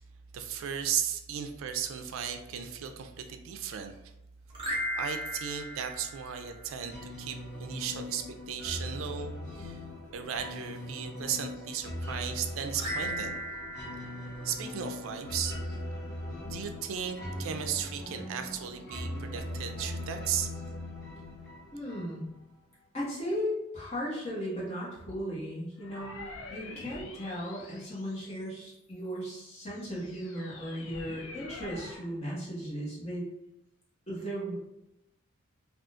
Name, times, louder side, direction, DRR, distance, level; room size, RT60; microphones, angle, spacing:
voice 1, 0.3-3.9 4.9-9.8 10.1-13.3 14.4-15.6 16.5-20.5, right 8 dB, 80° right, 7 dB, 0.4 m, -36 dB
sound 1, 4.5-7.0 12.7-15.3, equal, 25° right, 0.6 m, -37 dB
sound 2, 6.9-22.4, left 1 dB, 55° left, 1.0 m, -40 dB
voice 2, 21.7-22.3 22.9-26.2 26.5-33.2 34.1-34.5, equal, 35° left, -7 dB, 1.2 m, -36 dB
sound 3, 25.8-28.7 29.3-32.1, left 3 dB, 75° left, 0.5 m, -46 dB
3.5 x 2.4 x 2.5 m, 0.85 s
head